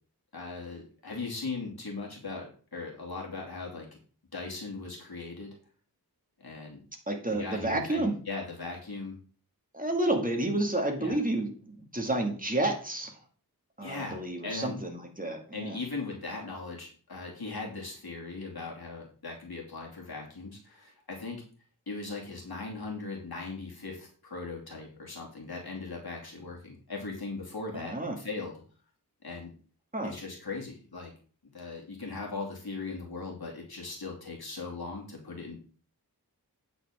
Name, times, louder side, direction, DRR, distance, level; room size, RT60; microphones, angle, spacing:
voice 1, 0.3-3.9 4.3-5.6 6.4-6.8 7.3-9.1 11.0-11.2 13.8-14.8 15.5-21.4 21.9-28.5 29.2-29.5 30.0-31.1 31.5-35.6, left 3 dB, 70° left, -1 dB, 2.7 m, -39 dB
voice 2, 7.1-8.1 9.7-13.1 13.8-15.8 27.7-28.2 29.9-30.1, right 1 dB, 20° right, 2 dB, 2.2 m, -30 dB
9.0 x 8.0 x 3.7 m, 0.40 s
wide cardioid pair, 65°, 39 cm